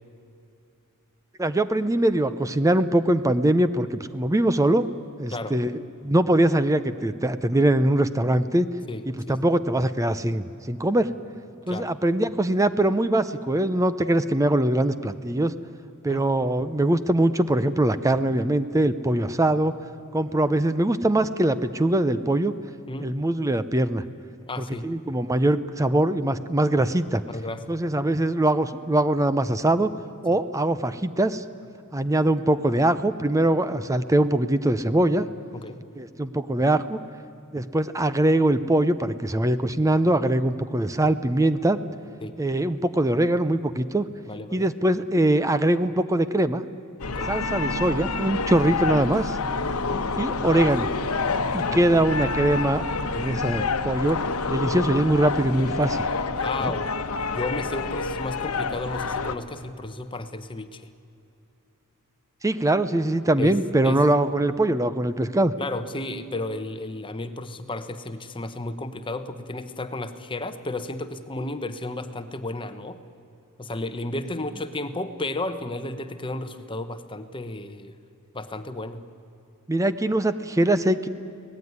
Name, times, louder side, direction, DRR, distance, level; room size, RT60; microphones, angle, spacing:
voice 1, 1.4-4.9 5.2-8.7 9.1-11.1 11.7-15.5 16.0-19.7 20.1-22.5 23.0-24.0 24.8-27.2 27.7-29.9 30.2-31.4 31.9-35.3 36.0-37.0 37.5-41.8 42.4-44.1 44.5-46.6 47.3-49.3 50.2-50.9 51.5-52.8 53.1-54.2 54.5-56.0 56.6-56.7 62.4-65.5 79.7-81.1, right 1 dB, 15° right, 12 dB, 0.6 m, -22 dB
voice 2, 8.9-9.4 11.7-11.9 16.1-16.2 22.9-23.1 24.5-24.8 27.3-27.8 35.5-35.8 42.2-42.3 44.3-44.7 47.1-47.3 48.8-49.1 49.8-50.2 51.6-51.8 56.3-56.9 57.3-60.9 63.4-63.6 63.8-64.0 65.6-73.0 73.6-78.0 78.3-79.0, left 2 dB, 25° left, 10 dB, 1.0 m, -33 dB
sound 1, 47.0-59.3, left 4 dB, 80° left, 1.1 m, -28 dB
24.5 x 18.5 x 9.5 m, 2.7 s
head